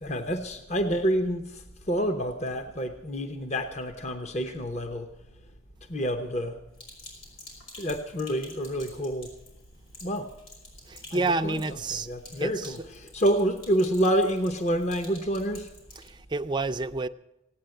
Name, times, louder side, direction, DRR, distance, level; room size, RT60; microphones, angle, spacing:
voice 1, 0.0-5.1 5.9-6.6 7.8-9.3 10.0-10.2 11.1-11.5 12.1-12.8 13.1-15.7, equal, 35° left, 0.9 m, -28 dB
Sink (filling or washing), 6.7-16.1, left 2 dB, 85° left, 5.6 m, -49 dB
voice 2, 10.9-12.1 12.4-12.9 15.9-17.1, right 3 dB, 20° right, 0.5 m, -29 dB
17.0 x 9.1 x 7.8 m
head